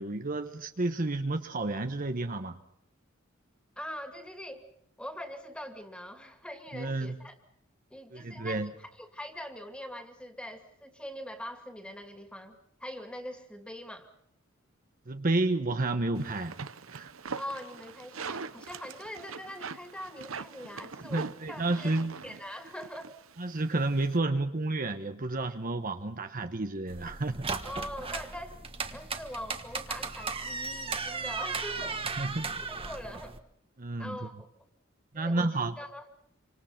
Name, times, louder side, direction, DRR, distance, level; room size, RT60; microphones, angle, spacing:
voice 1, 0.0-2.6 6.7-7.2 8.1-8.7 15.1-16.6 16.9-17.1 21.1-22.1 23.4-27.5 32.2-32.5 33.8-34.2 35.1-35.8, right 2 dB, 45° right, 1.1 m, -31 dB
voice 2, 3.8-4.7 5.0-7.3 7.9-14.1 17.3-22.0 22.2-23.1 27.6-33.4 34.0-34.5 35.1-36.0, equal, 5° left, 2.6 m, -43 dB
sound 1, 16.1-24.2, right 5 dB, 80° right, 0.9 m, -42 dB
sound 2, 26.9-33.4, right 4 dB, 25° right, 1.4 m, -36 dB
27.0 x 25.5 x 5.9 m
head